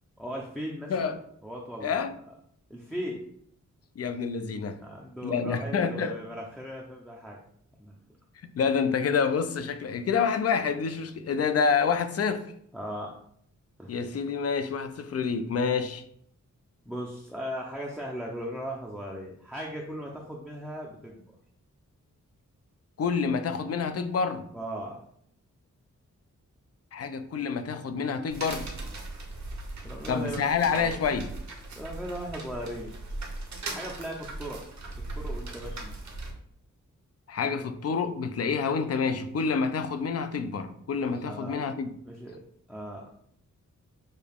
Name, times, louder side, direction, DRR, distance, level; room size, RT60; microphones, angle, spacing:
voice 1, 0.2-1.1 1.4-2.0 2.7-3.2 4.8-7.4 7.8-7.9 12.7-13.2 13.8-14.0 16.8-21.2 24.5-25.0 29.8-31.0 31.8-32.9 33.7-34.6 35.1-35.9 41.2-41.6 42.0-42.4 42.7-43.1, equal, ahead, 0.5 m, -37 dB
voice 2, 1.8-2.2 4.0-4.8 5.2-6.1 8.5-12.5 13.9-16.0 23.0-24.5 26.9-28.7 30.1-31.3 37.3-42.0, left 5 dB, 55° left, 0.4 m, -28 dB
sound 1, 28.3-36.3, right 2 dB, 65° right, 1.0 m, -39 dB
6.4 x 2.3 x 3.5 m
wide cardioid pair, 145°, 31 cm